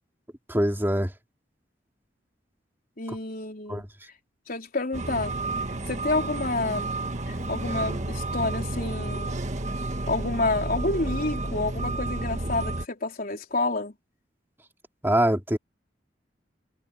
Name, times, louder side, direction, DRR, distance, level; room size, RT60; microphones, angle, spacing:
voice 1, 0.5-1.1 3.7-3.8 15.0-15.6, right 1 dB, 15° right, 2.7 m, -23 dB
voice 2, 3.0-3.8 4.5-5.3 5.9-6.9 7.3-9.4 10.1-13.9, left 2 dB, 50° left, 4.1 m, -29 dB
sound 1, 4.9-12.8, right 2 dB, 40° right, 1.6 m, -31 dB
head